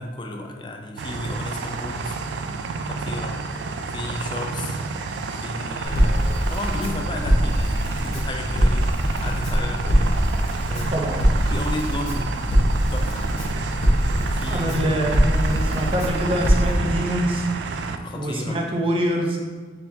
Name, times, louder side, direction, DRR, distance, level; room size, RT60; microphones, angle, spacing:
voice 1, 0.0-2.2 2.8-3.4 3.9-4.8 5.4-8.9 9.2-10.2 10.7-11.2 11.5-12.3 12.9-13.3 14.2-14.7 18.0-18.6, left 1 dB, 25° left, 3 dB, 0.4 m, -33 dB
sound 1, 1.0-18.0, right 4 dB, 85° right, 0.3 m, -30 dB
Crackle, 5.8-16.7, equal, 65° left, 1.1 m, -22 dB
voice 2, 14.5-17.5 18.1-19.4, equal, 30° right, 0 dB, 0.5 m, -25 dB
4.4 x 3.8 x 2.7 m, 1.4 s
head